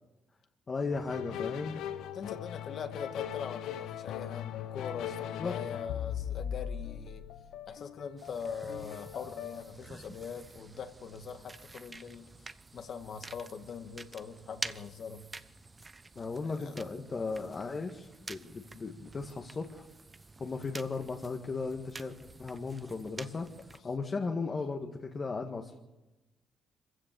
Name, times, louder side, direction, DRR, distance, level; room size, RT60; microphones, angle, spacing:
voice 1, 0.7-1.8 5.4-5.5 16.2-19.8 20.4-23.5 23.8-25.8, left 4 dB, 35° left, 3 dB, 1.8 m, -36 dB
sound 1, 0.9-9.6, left 10 dB, 85° left, 0.9 m, -39 dB
voice 2, 2.1-7.2 7.7-12.3 12.7-15.3 16.5-16.7, left 6 dB, 60° left, 7 dB, 1.9 m, -42 dB
sound 2, 8.2-23.8, right 3 dB, 25° right, 0.9 m, -48 dB
25.5 x 15.5 x 6.9 m, 1.1 s
cardioid pair, 90°, 0 cm